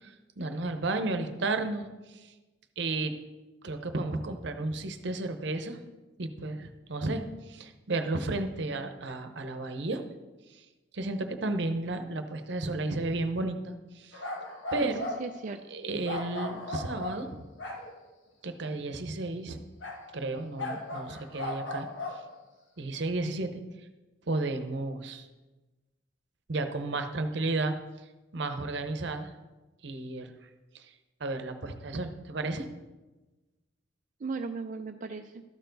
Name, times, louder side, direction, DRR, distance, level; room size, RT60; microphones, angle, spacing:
voice 1, 0.0-1.9 2.1-2.3 2.8-3.1 3.6-5.8 6.2-10.0 10.9-14.2 14.7-15.1 15.7-17.5 18.4-19.6 20.1-21.9 22.8-23.6 24.3-25.3 26.5-27.8 28.3-29.3 29.8-30.3 30.7-30.9 31.2-32.7, right 2 dB, 65° right, 8 dB, 0.8 m, -33 dB
sound 1, 14.1-15.2 16.1-18.0 19.8-20.0 20.6-22.3, left 2 dB, 80° left, 1.7 m, -37 dB
voice 2, 14.8-15.6 34.2-35.4, right 4 dB, 45° right, 4 dB, 0.4 m, -37 dB
13.0 x 6.9 x 4.0 m, 1.2 s
head